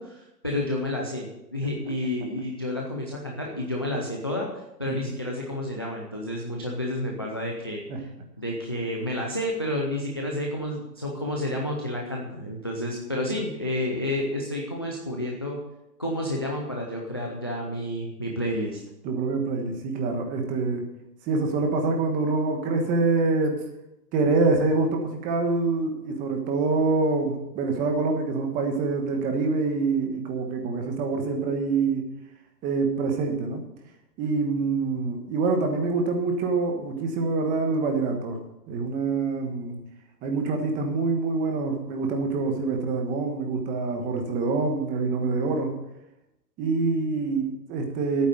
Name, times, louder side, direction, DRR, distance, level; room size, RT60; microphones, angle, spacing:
voice 1, 0.0-4.5 4.8-8.1 8.4-15.6 16.0-18.8, left 1 dB, 15° left, -1 dB, 0.4 m, -30 dB
voice 2, 19.0-20.9 21.3-23.6 24.1-32.0 32.6-33.6 34.2-38.4 38.7-39.8 40.2-45.7 46.6-48.3, right 3 dB, 15° right, 4 dB, 1.4 m, -25 dB
11.0 x 9.0 x 6.5 m, 0.89 s
hypercardioid pair, 155°, 50 cm